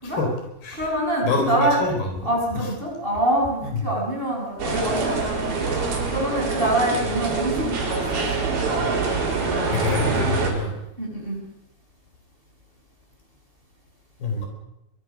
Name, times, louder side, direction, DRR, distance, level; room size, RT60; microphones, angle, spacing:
voice 1, 0.0-0.3 0.6-0.9 1.2-2.7 3.6-3.9 8.4-8.8 9.3-9.4 9.7-10.8 14.2-14.5, left 3 dB, 70° left, 3 dB, 6.3 m, -27 dB
voice 2, 0.8-1.8 2.3-8.2 11.0-11.4, right 1 dB, 15° right, -1 dB, 6.9 m, -25 dB
sound 1, 4.6-10.5, right 4 dB, 70° right, 6.1 m, -25 dB
23.0 x 22.5 x 6.4 m, 0.85 s
omnidirectional pair, 4.5 m